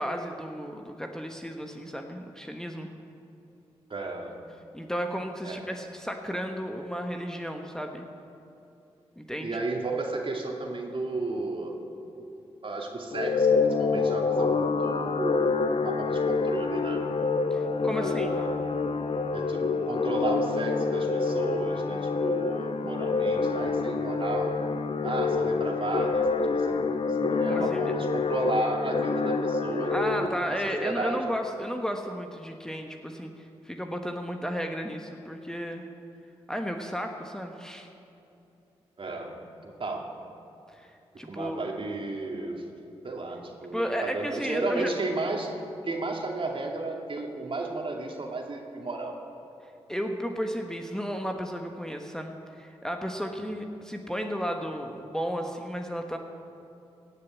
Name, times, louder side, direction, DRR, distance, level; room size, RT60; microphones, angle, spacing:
voice 1, 0.0-2.9 4.7-8.0 9.2-9.6 17.5-18.3 27.5-27.9 29.9-35.9 36.5-37.9 40.7-40.9 41.2-41.6 43.7-44.9 49.9-56.2, equal, 5° left, 4 dB, 1.3 m, -33 dB
voice 2, 3.9-4.4 5.4-5.8 9.4-11.8 12.2-12.4 12.6-17.0 17.9-18.6 19.3-24.6 25.0-31.2 39.0-40.1 41.2-42.6 43.0-45.5 45.8-49.2, right 2 dB, 50° right, 1 dB, 2.4 m, -33 dB
sound 1, 13.1-30.3, left 4 dB, 55° left, 0.9 m, -27 dB
17.0 x 6.7 x 8.4 m, 2.8 s
supercardioid pair, 40°, 12 cm